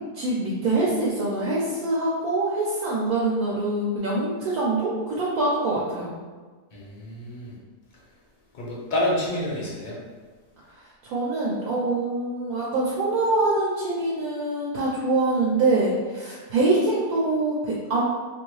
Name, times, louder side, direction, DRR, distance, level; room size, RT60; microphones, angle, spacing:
voice 1, 0.1-6.2 10.7-18.0, right 2 dB, 70° right, -6 dB, 1.1 m, -24 dB
voice 2, 6.7-7.6 8.5-9.9, left 1 dB, 45° left, -5 dB, 0.7 m, -28 dB
2.9 x 2.6 x 3.1 m, 1.4 s
omnidirectional pair, 1.7 m